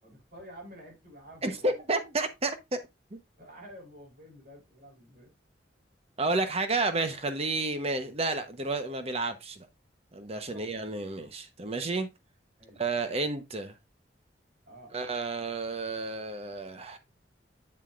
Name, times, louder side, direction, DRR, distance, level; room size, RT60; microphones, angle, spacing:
voice 1, 0.0-1.7 3.4-5.3 10.5-10.8 12.6-13.1 14.7-15.0, equal, 60° right, 5.2 m, -50 dB
voice 2, 1.4-2.8 3.1-3.2 6.2-9.7 10.1-12.1 12.8-13.8 14.9-17.0, right 3 dB, 35° right, 0.9 m, -31 dB
7.8 x 7.2 x 2.5 m
head